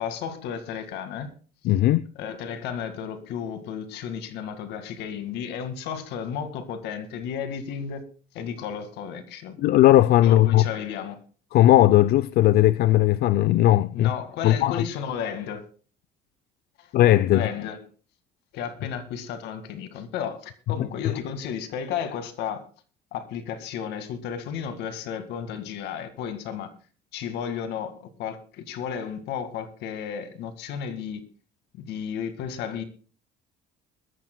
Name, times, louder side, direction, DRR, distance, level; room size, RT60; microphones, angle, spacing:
voice 1, 0.0-1.3 2.2-8.0 8.3-9.6 10.2-11.2 13.9-15.6 16.8-16.9 17.3-17.8 18.5-22.7 23.1-26.7 27.1-31.2 31.7-32.8, left 7 dB, 85° left, 2.0 m, -33 dB
voice 2, 1.6-2.1 9.6-10.6 11.5-14.1 14.4-14.8 16.9-17.4, left 14 dB, 70° left, 0.5 m, -18 dB
21.0 x 14.0 x 2.2 m
cardioid pair, 110°, 17 cm